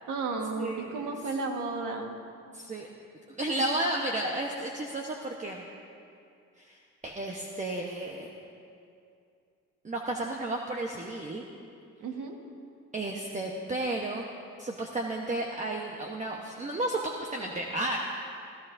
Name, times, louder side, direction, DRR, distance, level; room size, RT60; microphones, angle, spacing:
voice 1, 0.1-2.1 12.0-12.4, right 3 dB, 85° right, 3 dB, 1.6 m, -33 dB
voice 2, 0.6-1.0 2.5-2.9 3.3-5.6 6.6-8.3 9.8-11.5 12.9-14.2 14.6-18.0, right 2 dB, 25° right, 0 dB, 1.1 m, -33 dB
25.0 x 14.5 x 2.7 m, 2.5 s
cardioid pair, 90°, 30 cm